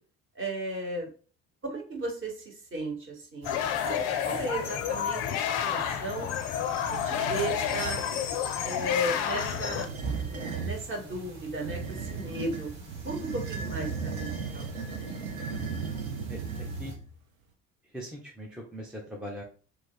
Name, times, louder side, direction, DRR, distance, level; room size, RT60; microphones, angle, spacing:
voice 1, 0.4-1.1 1.6-6.3 7.0-8.0 8.6-9.9 10.3-12.7 13.0-14.8, right 1 dB, 30° right, 1 dB, 1.0 m, -35 dB
sound 1, 3.4-9.9, left 9 dB, 55° left, 0.5 m, -30 dB
sound 2, 3.4-17.0, right 3 dB, 55° right, 1.1 m, -44 dB
sound 3, 6.8-8.1 9.2-10.8 11.6-17.1, right 5 dB, 80° right, 0.6 m, -36 dB
voice 2, 17.9-19.4, equal, ahead, -1 dB, 0.4 m, -40 dB
2.3 x 2.3 x 3.6 m, 0.40 s
figure-of-eight pair, 55°, 41 cm